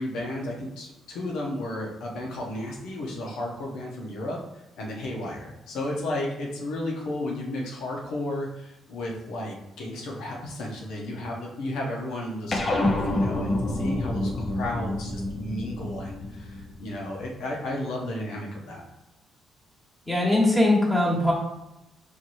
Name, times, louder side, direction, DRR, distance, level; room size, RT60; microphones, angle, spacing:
voice 1, 0.0-4.4 4.8-18.9, left 1 dB, 85° left, -1 dB, 0.9 m, -33 dB
sound 1, 12.5-17.2, left 1 dB, 35° left, 0.6 m, -28 dB
voice 2, 20.1-21.3, left 1 dB, 10° left, -4 dB, 1.4 m, -21 dB
4.6 x 3.0 x 2.6 m, 0.92 s
cardioid pair, 90°, 0 cm